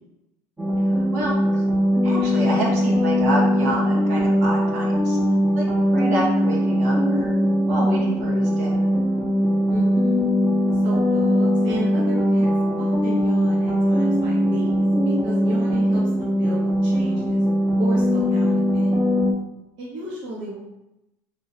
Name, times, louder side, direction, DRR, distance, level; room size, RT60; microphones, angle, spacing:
sound 1, 0.6-19.3, equal, 15° right, 0.9 m, -20 dB
voice 1, 1.1-1.6 2.0-5.2 5.5-5.7 5.9-7.3 7.7-8.8, right 1 dB, 80° right, -4 dB, 1.3 m, -28 dB
voice 2, 9.7-10.3 10.7-12.5 12.8-17.4 17.8-18.9 19.8-20.6, right 2 dB, 65° right, -4 dB, 1.1 m, -34 dB
3.6 x 2.7 x 4.2 m, 0.92 s
hypercardioid pair, 90°, 9 cm